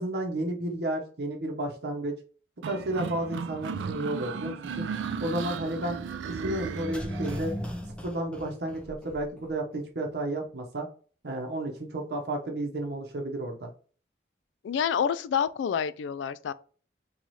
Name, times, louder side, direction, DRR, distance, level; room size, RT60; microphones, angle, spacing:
voice 1, 0.0-2.1 2.6-4.9 5.2-7.6 8.0-10.9 11.2-13.7, right 1 dB, 65° right, 0.7 m, -32 dB
sound 1, 2.6-7.4, right 5 dB, 90° right, 0.3 m, -35 dB
sound 2, 6.6-9.5 9.7-9.8, equal, 5° left, 0.4 m, -36 dB
voice 2, 14.6-16.5, left 7 dB, 90° left, 0.3 m, -28 dB
3.1 x 2.3 x 4.0 m
head